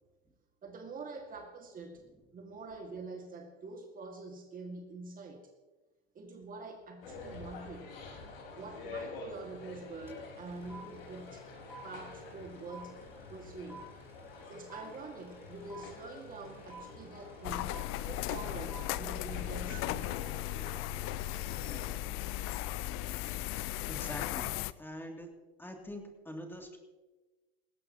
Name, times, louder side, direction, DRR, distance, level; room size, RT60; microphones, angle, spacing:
voice 1, 0.6-2.0 2.3-5.5 6.1-7.9 8.6-11.4 11.8-13.0 13.3-13.9 14.5-20.1, right 3 dB, 30° right, 3 dB, 2.1 m, -46 dB
sound 1, 7.0-21.8, left 3 dB, 75° left, 4.6 m, -48 dB
sound 2, 10.1-10.2 10.4-21.5, right 4 dB, 10° right, 5.0 m, -52 dB
sound 3, 17.4-24.7, left 14 dB, 45° left, 0.5 m, -36 dB
voice 2, 23.9-24.5 24.8-25.3 25.6-26.8, equal, 5° left, 2 dB, 2.9 m, -44 dB
19.5 x 16.5 x 3.0 m, 1.2 s
hypercardioid pair, 95°, 30 cm